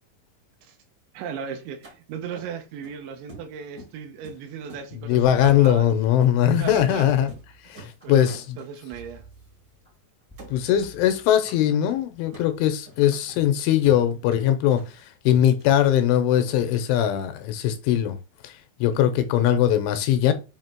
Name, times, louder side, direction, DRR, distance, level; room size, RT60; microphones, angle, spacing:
voice 1, 1.1-5.9 6.6-7.1 7.6-7.8 8.0-9.3 18.9-19.2, right 7 dB, 80° right, 2.8 m, -37 dB
sound 1, 1.8-1.9 2.3-2.9 3.3-5.3 5.6-5.8 6.2-6.4 6.7-6.9 7.2-7.5 7.7-9.0 9.4-9.5 9.7-10.0 10.4-11.0 11.2-16.9, right 1 dB, 55° right, 1.1 m, -47 dB
voice 2, 5.0-7.3 7.7-8.6 10.5-14.8 15.3-18.2 18.4-18.5 18.8-20.3, left 10 dB, 80° left, 3.0 m, -20 dB
sound 2, 6.1-6.2 6.6-8.1 8.9-9.9 10.3-11.7 12.2-12.5, right 3 dB, 5° left, 0.5 m, -49 dB
7.9 x 2.8 x 4.4 m
omnidirectional pair, 5.7 m